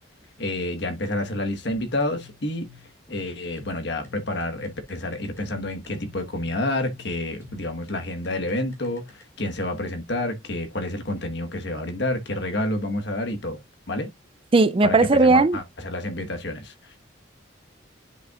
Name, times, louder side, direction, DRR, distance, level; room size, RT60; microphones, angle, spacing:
voice 1, 0.4-2.7 3.1-13.6 13.9-14.1 14.8-17.0, left 1 dB, 60° left, 1.3 m, -29 dB
sound 1, 1.6-9.2, left 4 dB, 15° left, 2.3 m, -49 dB
voice 2, 14.5-15.6, right 3 dB, 25° right, 0.4 m, -17 dB
9.9 x 5.3 x 2.4 m
head